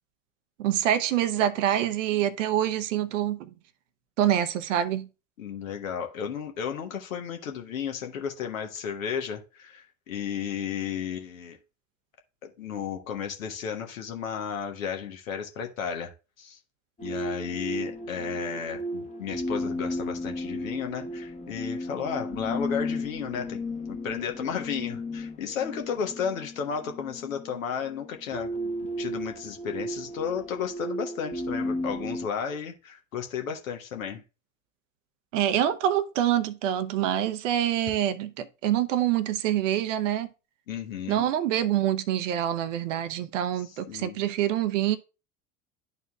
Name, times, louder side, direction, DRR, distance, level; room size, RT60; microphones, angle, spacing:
voice 1, 0.6-3.5 4.2-5.1 35.3-40.3 41.1-45.0, right 11 dB, 60° right, 0.8 m, -26 dB
voice 2, 5.4-11.6 12.4-16.6 17.0-23.6 23.9-34.2 40.7-41.3 43.6-44.2, left 7 dB, 70° left, 1.3 m, -33 dB
sound 1, 17.0-32.3, left 1 dB, 15° left, 1.1 m, -34 dB
11.5 x 4.1 x 2.3 m
figure-of-eight pair, 75°, 41 cm